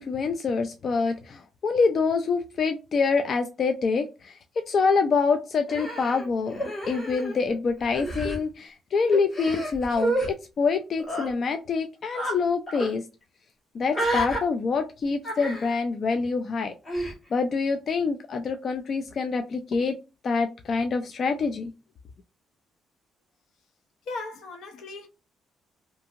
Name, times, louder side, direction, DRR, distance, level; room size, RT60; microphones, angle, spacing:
voice 1, 0.0-4.4 4.7-6.5 6.9-13.0 13.7-19.9 20.2-21.7, left 4 dB, 45° left, 0.3 m, -26 dB
Human voice, 5.7-7.5 7.8-8.4 9.1-10.3 11.0-11.3 12.1-12.4 12.7-12.9 13.9-14.4 15.2-15.8 16.8-17.1, right 1 dB, 30° left, 1.3 m, -30 dB
voice 2, 24.1-25.1, left 3 dB, 75° left, 0.7 m, -37 dB
2.7 x 2.6 x 2.4 m
cardioid pair, 135°, 0 cm